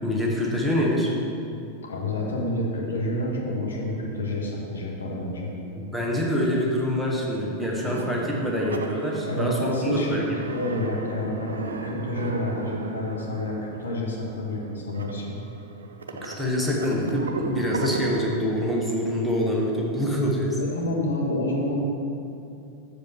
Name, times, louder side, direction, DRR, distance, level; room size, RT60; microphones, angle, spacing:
voice 1, 0.0-1.1 5.7-10.4 16.2-20.6, equal, ahead, -4 dB, 1.3 m, -25 dB
voice 2, 1.9-5.5 9.2-10.2 10.5-15.4 20.6-21.8, left 1 dB, 70° left, -2 dB, 1.3 m, -28 dB
sound 1, 7.8-18.4, right 3 dB, 70° right, 0.5 m, -37 dB
6.7 x 5.1 x 6.3 m, 2.6 s
figure-of-eight pair, 90°, 0 cm